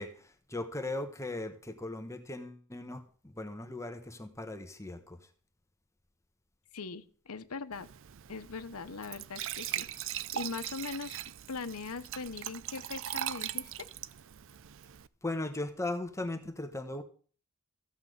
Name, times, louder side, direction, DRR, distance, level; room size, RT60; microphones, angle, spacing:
voice 1, 0.0-5.2 15.2-17.0, left 2 dB, 15° left, 1.1 m, -38 dB
voice 2, 6.7-7.9 8.3-11.2 11.5-13.9, left 4 dB, 90° left, 0.9 m, -41 dB
Glass / Trickle dribble / Fill (with liquid), 7.7-15.1, right 12 dB, 60° right, 0.5 m, -40 dB
15.0 x 5.7 x 7.9 m
head